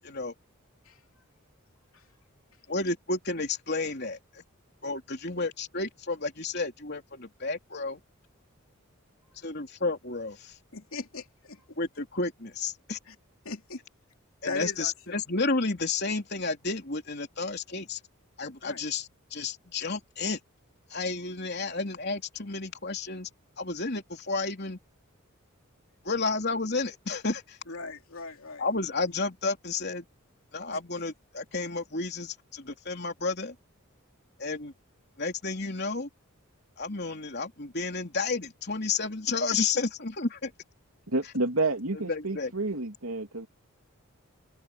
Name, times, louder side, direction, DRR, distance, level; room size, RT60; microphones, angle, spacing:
voice 1, 0.0-0.3 2.7-4.4 4.8-8.0 9.4-10.6 11.8-13.0 14.4-18.0 18.4-20.4 20.9-23.3 23.6-24.8 26.0-27.6 28.6-30.1 30.5-33.6 34.4-34.7 35.2-36.1 36.8-40.5 41.9-42.5, left 3 dB, 50° left, 3.7 m, -31 dB
voice 2, 10.7-11.6 13.1-13.2 13.4-13.8 14.4-15.2 18.6-18.8 27.7-28.6, left 3 dB, 75° left, 3.0 m, -38 dB
voice 3, 41.1-43.5, right 2 dB, 80° right, 2.9 m, -29 dB
head